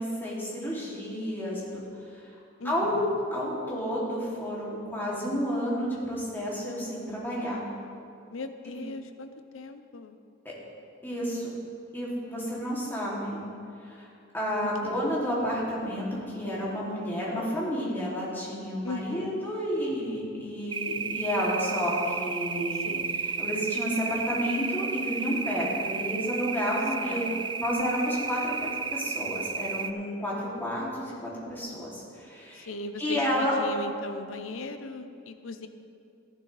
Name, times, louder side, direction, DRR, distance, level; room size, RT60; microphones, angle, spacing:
voice 1, 0.0-1.8 2.6-3.0 3.3-7.7 8.7-8.8 11.0-11.5 11.9-13.4 13.8-14.1 14.3-23.0 23.4-27.3 27.6-32.7 33.0-33.5, equal, 10° left, -7 dB, 2.8 m, -31 dB
voice 2, 2.6-3.2 8.3-10.2 14.8-15.2 18.8-19.4 22.8-23.2 27.0-27.6 32.5-35.7, left 3 dB, 85° left, 9 dB, 0.7 m, -38 dB
sound 1, 20.7-29.9, right 5 dB, 25° right, 0.3 m, -32 dB
14.5 x 11.5 x 3.4 m, 2.5 s
head